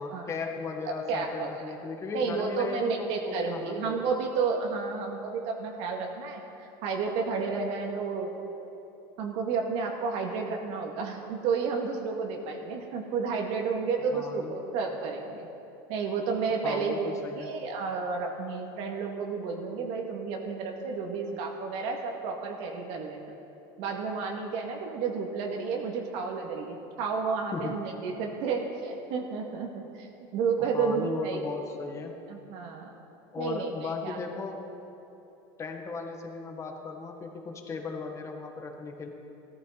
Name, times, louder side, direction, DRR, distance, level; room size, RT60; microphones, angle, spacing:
voice 1, 0.0-4.1 14.1-14.5 16.6-17.5 27.5-27.8 30.6-32.1 33.3-34.7 35.6-39.1, left 4 dB, 25° left, 3 dB, 1.6 m, -37 dB
voice 2, 1.1-1.5 2.1-8.3 9.2-15.5 15.9-17.1 17.4-23.3 23.8-31.4 32.3-32.9 33.4-34.2, right 5 dB, 65° right, 1 dB, 2.1 m, -31 dB
17.5 x 14.0 x 4.1 m, 2.9 s
supercardioid pair, 130°, 11 cm